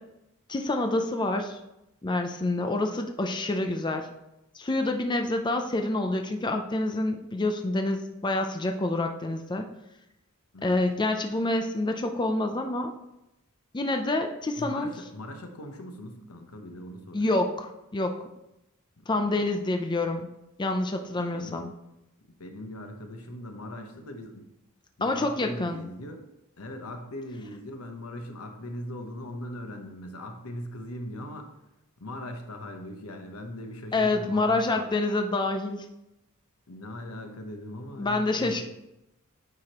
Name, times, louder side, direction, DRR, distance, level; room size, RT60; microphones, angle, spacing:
voice 1, 0.5-1.6 2.0-4.1 4.5-9.6 10.6-12.9 13.7-14.9 17.1-18.1 19.1-20.3 20.6-21.7 25.0-25.8 33.9-35.8 38.0-38.6, left 2 dB, 20° left, 5 dB, 0.5 m, -27 dB
voice 2, 14.6-17.4 19.0-19.5 21.1-21.6 22.4-24.4 25.0-26.3 26.6-31.5 32.0-34.9 36.7-38.6, left 1 dB, 85° left, 4 dB, 1.0 m, -40 dB
9.4 x 4.9 x 3.0 m, 0.89 s
head